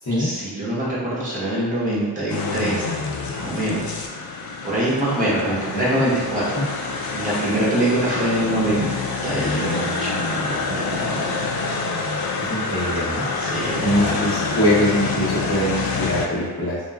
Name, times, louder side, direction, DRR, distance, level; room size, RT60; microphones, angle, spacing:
voice 1, 0.2-2.8 3.3-3.8 4.6-8.9 9.2-11.4 13.4-14.2, right 1 dB, 20° right, -7 dB, 1.0 m, -24 dB
sound 1, 2.3-16.3, left 4 dB, 60° left, 0.5 m, -27 dB
voice 2, 5.4-6.0 6.5-6.7 12.4-13.2 13.8-16.8, left 1 dB, 40° left, -12 dB, 0.9 m, -23 dB
2.9 x 2.3 x 2.3 m, 1.5 s
cardioid pair, 50°, 42 cm